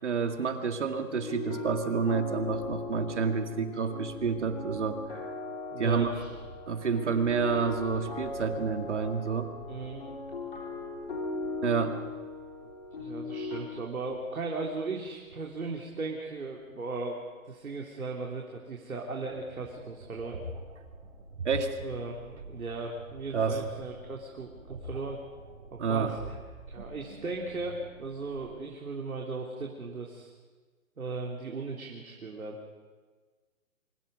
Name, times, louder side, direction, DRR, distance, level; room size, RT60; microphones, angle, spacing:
voice 1, 0.0-5.3 5.8-6.1 6.7-9.5 11.6-12.0 21.4-21.8 23.3-23.6 25.8-26.2, right 5 dB, 55° right, 6 dB, 2.2 m, -29 dB
sound 1, 1.1-13.6, left 3 dB, 40° left, 4.0 m, -39 dB
sound 2, 5.6-18.2, equal, 10° left, 0.7 m, -51 dB
voice 2, 5.7-6.3 9.7-10.0 13.0-20.4 21.8-25.2 25.7-26.4 26.7-30.3 31.0-32.6, right 3 dB, 80° right, -1 dB, 3.5 m, -37 dB
sound 3, 19.2-28.5, right 1 dB, 40° right, 7.1 m, -45 dB
24.5 x 24.5 x 5.4 m, 1.4 s
hypercardioid pair, 175°, 42 cm